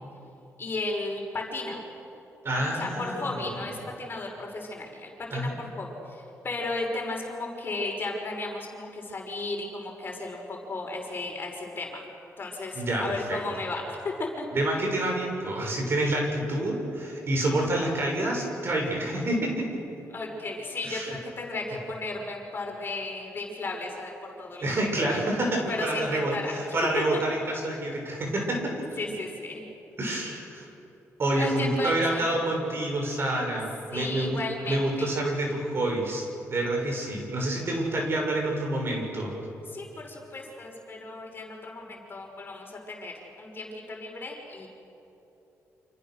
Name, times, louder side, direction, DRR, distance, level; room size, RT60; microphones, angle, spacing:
voice 1, 0.6-1.8 2.5-12.0 12.4-14.5 20.1-24.1 24.4-24.7 25.0-25.2 25.7-26.5 26.9-27.0 29.0-29.6 31.3-32.3 33.9-35.1 39.7-44.7, left 2 dB, 40° left, 0 dB, 5.9 m, -35 dB
voice 2, 2.4-3.6 5.3-5.5 12.7-13.4 14.5-19.8 20.8-21.2 24.6-28.8 30.0-30.7 31.2-34.4 34.7-39.3, right 1 dB, 45° right, 1 dB, 6.7 m, -28 dB
29.5 x 27.0 x 6.6 m, 2.9 s
cardioid pair, 105°, 6 cm